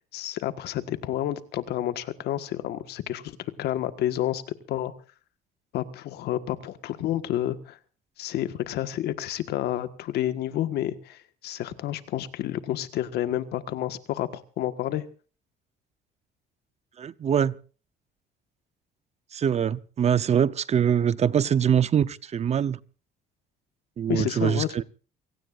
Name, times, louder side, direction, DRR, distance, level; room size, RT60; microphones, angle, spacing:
voice 1, 0.1-4.4 4.7-4.9 5.7-7.8 8.2-15.1 24.1-24.8, left 12 dB, 75° left, 1.6 m, -30 dB
voice 2, 17.0-17.5 19.3-22.8 24.0-24.8, right 8 dB, 40° right, 0.8 m, -23 dB
28.5 x 17.5 x 2.6 m
cardioid pair, 110°, 17 cm